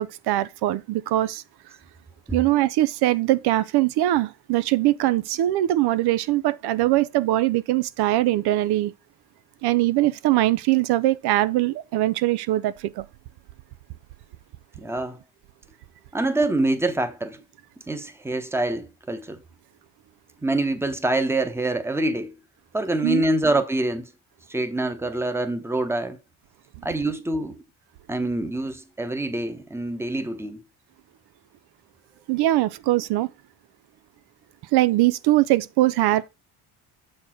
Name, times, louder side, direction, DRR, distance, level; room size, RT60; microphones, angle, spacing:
voice 1, 0.0-1.4 2.3-8.9 9.6-13.0 23.0-23.2 32.3-33.3 34.7-36.2, right 15 dB, 75° right, 0.5 m, -22 dB
voice 2, 14.8-15.2 16.1-17.4 17.9-19.4 20.4-22.3 22.7-24.1 24.5-26.2 26.8-27.5 28.1-30.6, right 2 dB, 5° right, 0.9 m, -25 dB
7.0 x 4.4 x 4.4 m
cardioid pair, 115°, 39 cm